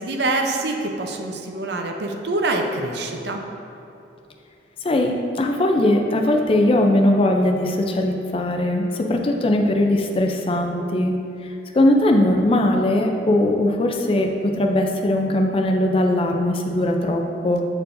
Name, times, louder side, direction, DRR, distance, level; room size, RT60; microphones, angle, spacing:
voice 1, 0.0-3.4, right 2 dB, 65° right, 3 dB, 0.6 m, -25 dB
voice 2, 4.8-11.1 11.4-17.7, left 1 dB, 30° left, 3 dB, 0.4 m, -20 dB
8.4 x 4.5 x 2.6 m, 2.7 s
head